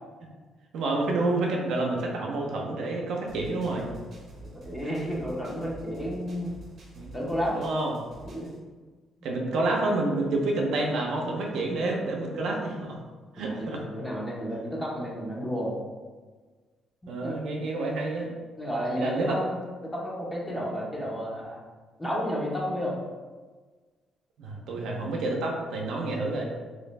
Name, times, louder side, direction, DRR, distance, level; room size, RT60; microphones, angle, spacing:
voice 1, 0.7-3.9 7.0-7.2 7.5-7.9 9.2-13.0 13.3-13.8 17.1-18.3 19.0-19.4 24.4-26.5, right 2 dB, 80° right, 0 dB, 0.6 m, -28 dB
sound 1, 3.3-8.6, right 2 dB, 55° right, 0.8 m, -47 dB
voice 2, 4.6-6.5 7.1-7.6 8.2-8.5 13.4-15.8 17.0-17.4 18.6-19.6 19.9-21.6 22.0-23.0 24.7-24.9, equal, 15° left, -4 dB, 0.9 m, -31 dB
3.1 x 2.7 x 3.2 m, 1.4 s
cardioid pair, 90°, 0 cm